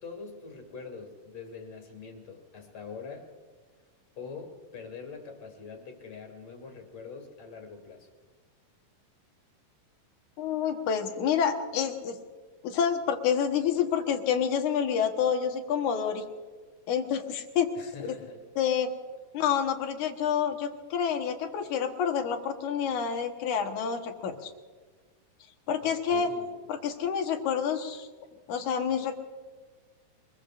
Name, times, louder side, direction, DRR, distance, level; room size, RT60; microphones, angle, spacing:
voice 1, 0.0-3.3 4.2-8.1 17.7-18.4 25.8-26.5, left 5 dB, 50° left, 3 dB, 3.2 m, -44 dB
voice 2, 10.4-12.2 12.6-16.2 16.9-17.7 18.0-18.1 18.6-18.9 19.3-24.5 25.7-26.3 26.7-28.1 28.5-29.2, left 7 dB, 65° left, 5 dB, 2.5 m, -28 dB
25.5 x 21.5 x 2.5 m, 1.5 s
omnidirectional pair, 4.0 m